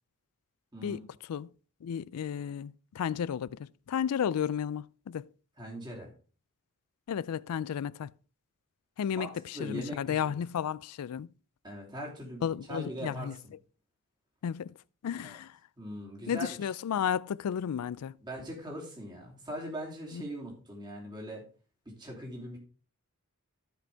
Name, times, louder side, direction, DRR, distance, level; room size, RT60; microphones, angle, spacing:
voice 1, 1.8-5.3 7.1-8.1 9.0-11.3 12.4-13.4 14.4-14.7 15.0-15.6 16.3-18.2 20.1-20.2, left 8 dB, 80° left, 0.3 m, -33 dB
voice 2, 5.6-6.1 9.2-10.4 11.6-13.5 15.2-15.4 15.8-16.6 18.2-21.4 21.8-22.6, equal, 20° right, 2.8 m, -41 dB
14.0 x 5.1 x 3.4 m
head